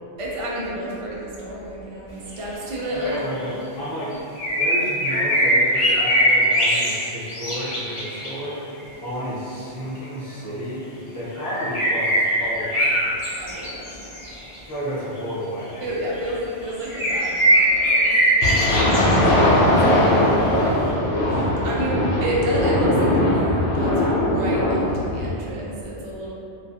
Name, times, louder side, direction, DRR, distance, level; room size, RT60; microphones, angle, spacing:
voice 1, 0.2-3.4 12.4-12.5 13.4-14.1 15.8-18.1 19.1-20.6 21.3-26.3, equal, 55° right, -6 dB, 0.4 m, -30 dB
sound 1, 2.8-3.5 4.4-8.5 11.4-14.6 15.3-15.4 15.9-16.3 16.6-19.2 20.5-20.6, equal, 45° left, 0.4 m, -21 dB
voice 2, 2.9-4.1 4.5-8.6 9.0-10.8 11.1-13.0 14.7-15.9 19.2-20.6, equal, 20° right, -13 dB, 0.7 m, -31 dB
sound 2, 18.4-25.4, left 1 dB, 90° left, 0.9 m, -20 dB
2.3 x 2.3 x 2.7 m, 2.7 s
omnidirectional pair, 1.1 m